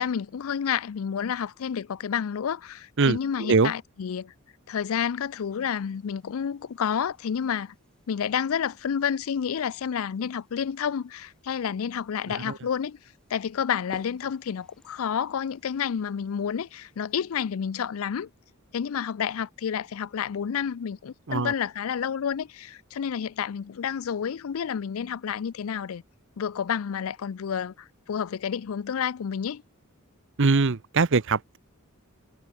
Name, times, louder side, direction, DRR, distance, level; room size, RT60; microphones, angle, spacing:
voice 1, 0.0-4.3 4.7-7.7 8.1-13.0 13.3-18.3 18.7-26.0 26.4-29.6, left 7 dB, 70° left, 0.4 m, -30 dB
voice 2, 3.0-3.7 12.3-12.6 21.3-21.5 30.4-31.6, right 4 dB, 60° right, 0.8 m, -23 dB
sound 1, 5.3-17.6, equal, 5° left, 6.1 m, -58 dB
head